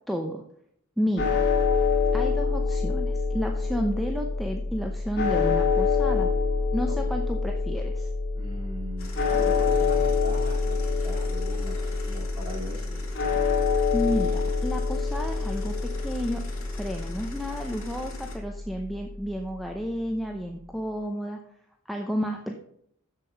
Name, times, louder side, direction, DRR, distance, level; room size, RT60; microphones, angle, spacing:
voice 1, 0.1-0.4 1.0-1.4 2.1-6.3 6.7-8.1 13.9-16.4 16.7-21.4 21.9-22.5, equal, ahead, 2 dB, 0.7 m, -31 dB
sound 1, 1.2-19.4, left 4 dB, 55° left, 2.8 m, -26 dB
voice 2, 8.3-13.0, left 1 dB, 25° right, -2 dB, 3.2 m, -40 dB
sound 2, 9.0-18.4, left 2 dB, 75° left, 3.1 m, -44 dB
7.5 x 7.3 x 5.7 m, 0.69 s
head